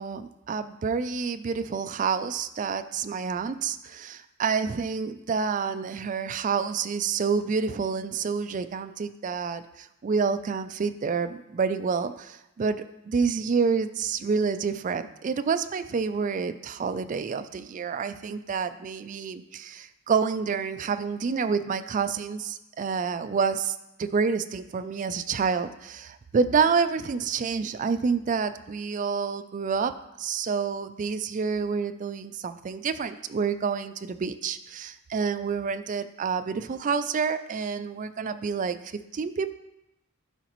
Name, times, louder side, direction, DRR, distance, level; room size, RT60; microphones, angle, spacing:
voice 1, 0.0-39.5, right 5 dB, 35° right, 11 dB, 0.3 m, -28 dB
12.0 x 4.9 x 3.0 m, 0.92 s
head